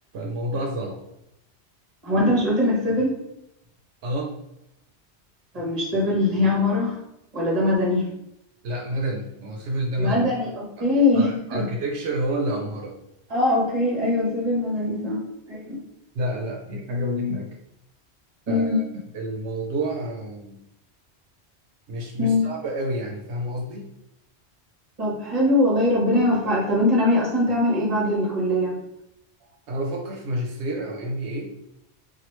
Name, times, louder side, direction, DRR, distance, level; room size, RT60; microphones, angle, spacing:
voice 1, 0.1-1.0 4.0-4.3 8.6-10.2 10.8-10.9 11.1-12.9 14.8-15.1 16.1-17.5 18.5-18.8 19.1-20.6 21.9-23.9 29.7-31.5, equal, 85° right, 0 dB, 0.9 m, -29 dB
voice 2, 2.0-3.2 5.5-7.0 7.3-8.1 10.0-11.7 13.3-15.2 15.5-15.8 18.5-18.8 22.2-22.5 25.0-28.8, left 1 dB, 35° right, -4 dB, 1.1 m, -22 dB
2.9 x 2.4 x 3.1 m, 0.84 s
omnidirectional pair, 1.1 m